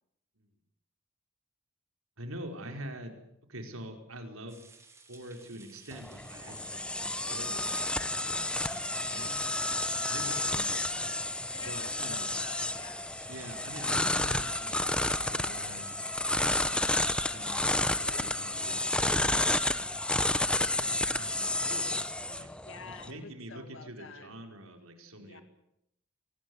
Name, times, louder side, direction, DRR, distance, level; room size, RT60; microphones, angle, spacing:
voice 1, 2.2-3.1 3.5-4.6 5.1-9.4 10.1-11.1 11.6-12.3 13.3-15.9 16.3-19.5 20.1-22.5 23.0-25.4, right 1 dB, 75° right, 5 dB, 4.9 m, -46 dB
sound 1, 4.5-19.9, right 3 dB, 15° right, 3.3 m, -57 dB
sound 2, 5.9-23.1, left 1 dB, 5° left, 0.9 m, -31 dB
voice 2, 10.1-10.5 11.5-13.1 19.2-19.6 22.6-24.4 25.2-25.4, left 4 dB, 60° left, 9 dB, 2.2 m, -49 dB
24.5 x 19.0 x 9.7 m, 0.78 s
head